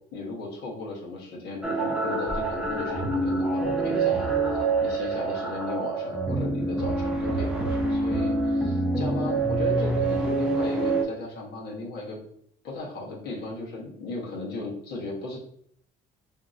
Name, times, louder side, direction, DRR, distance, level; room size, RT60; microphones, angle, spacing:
voice 1, 0.1-4.3 4.5-12.2 12.6-15.4, left 3 dB, 70° left, -3 dB, 1.1 m, -36 dB
sound 1, 1.6-11.0, right 2 dB, 5° right, 0.7 m, -26 dB
2.8 x 2.6 x 2.5 m, 0.70 s
cardioid pair, 110°, 17 cm